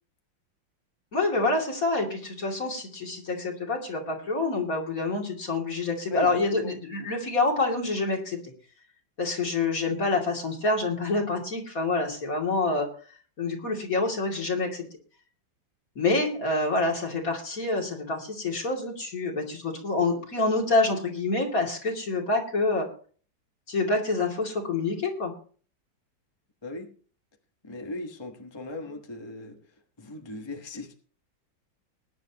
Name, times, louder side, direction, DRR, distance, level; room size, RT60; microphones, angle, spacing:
voice 1, 1.1-8.4 9.2-12.9 13.4-14.8 16.0-22.9 23.7-25.3, left 3 dB, 45° left, 0 dB, 3.1 m, -27 dB
voice 2, 6.1-6.7 26.6-26.9 27.6-29.7 30.0-31.0, left 2 dB, 15° left, 4 dB, 1.0 m, -38 dB
20.0 x 10.5 x 2.9 m, 0.41 s
omnidirectional pair, 2.2 m